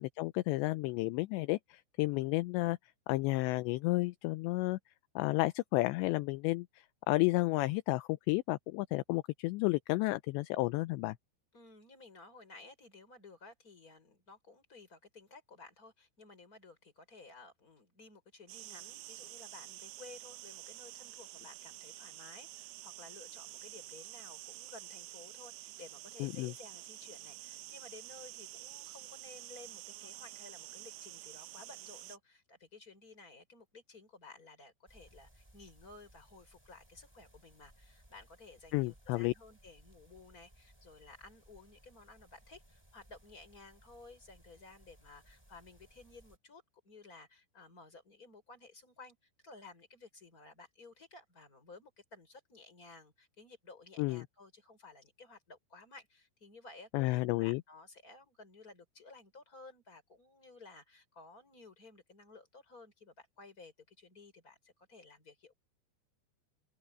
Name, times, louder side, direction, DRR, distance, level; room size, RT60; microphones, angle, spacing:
voice 1, 0.0-2.8 3.1-4.8 5.2-11.2 26.2-26.5 38.7-39.3 54.0-54.3 56.9-57.6, left 21 dB, 80° left, 2.7 m, -32 dB
voice 2, 11.5-49.2 49.4-65.6, left 3 dB, 20° left, 5.8 m, -55 dB
sound 1, 18.5-32.2, right 17 dB, 80° right, 3.1 m, -49 dB
sound 2, 34.9-46.4, right 1 dB, 5° right, 4.2 m, -63 dB
open air
omnidirectional pair, 5.4 m